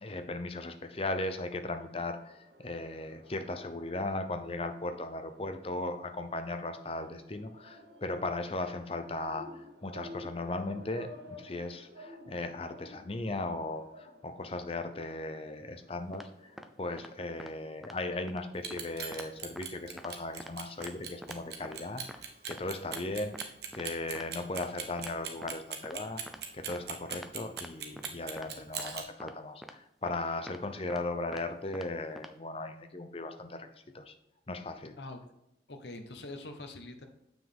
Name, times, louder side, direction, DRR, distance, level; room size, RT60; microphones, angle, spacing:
voice 1, 0.0-16.5 16.8-22.0 22.5-23.4 23.7-26.2 26.5-33.7 33.9-34.1 34.5-35.0, left 2 dB, 30° left, 8 dB, 0.7 m, -37 dB
sound 1, 1.8-17.6, left 1 dB, 85° right, 1.1 m, -53 dB
sound 2, 16.1-16.3 16.6-16.7 17.0-17.1 17.4-17.5 17.8-18.0 18.3-18.4 18.7-18.8 19.1-19.3 19.5-19.6 20.0-20.1 20.4-20.5 20.8-20.9 21.2-21.4 21.6-21.8 22.1-22.2 22.5-22.6 22.9-23.0 23.3-23.5 23.7-23.8 24.1-24.2 24.6-24.7 25.0-25.1 25.4-25.5 25.8-25.9 26.3-26.4 26.7-26.8 27.1-27.3 27.6-27.7 28.0-28.1 28.4-28.5 28.8-28.9 29.2-29.3 29.6-29.7 30.1-30.2 30.5-30.6 30.9-31.0 31.3-31.4 31.7-31.9 32.2-32.3, equal, ahead, 0.5 m, -45 dB
Clock, 18.5-29.0, right 8 dB, 65° right, 1.2 m, -39 dB
voice 2, 35.7-37.1, left 2 dB, 75° left, 5 dB, 1.1 m, -44 dB
7.3 x 6.1 x 3.6 m, 0.86 s
head